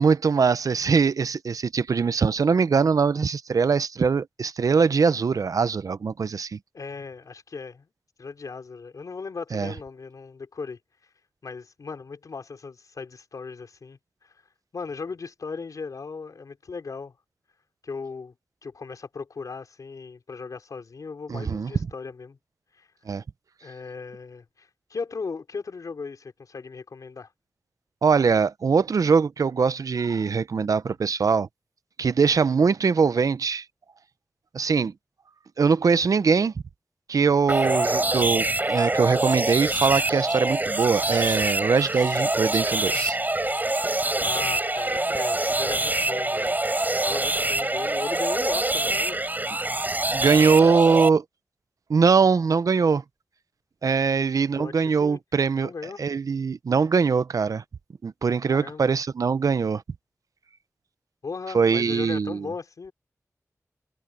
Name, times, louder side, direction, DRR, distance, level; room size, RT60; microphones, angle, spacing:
voice 1, 0.0-6.6 9.5-9.7 21.3-21.7 23.1-23.2 28.0-31.5 32.0-33.6 34.5-34.9 35.6-36.5 37.1-43.2 50.1-51.2 51.9-53.0 53.8-55.7 56.0-57.6 58.0-59.8 61.5-62.5, right 5 dB, 85° right, 0.7 m, -22 dB
voice 2, 6.7-7.9 8.2-10.8 11.4-14.3 14.7-17.1 17.8-18.3 18.6-22.4 22.7-22.9 23.6-27.3 44.2-49.2 49.6-49.7 54.1-54.2 54.6-55.2 55.6-56.0 58.5-58.9 61.2-62.9, left 4 dB, 85° left, 4.5 m, -37 dB
sound 1, 37.5-51.1, right 2 dB, 30° right, 3.9 m, -25 dB
cardioid pair, 45°, 6 cm